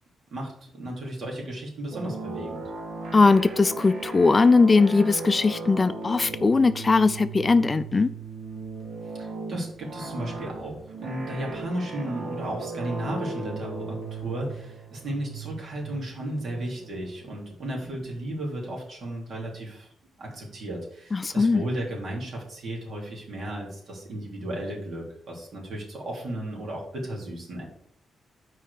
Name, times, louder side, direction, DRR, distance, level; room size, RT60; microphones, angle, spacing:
voice 1, 0.3-2.6 9.2-19.9 20.2-27.6, right 1 dB, 60° right, -2 dB, 3.1 m, -34 dB
sound 1, 1.9-18.4, right 3 dB, 75° right, 2.0 m, -37 dB
voice 2, 3.1-8.1 21.1-21.6, left 4 dB, 25° left, 12 dB, 0.4 m, -20 dB
6.0 x 4.7 x 6.6 m, 0.67 s
cardioid pair, 110°, 0 cm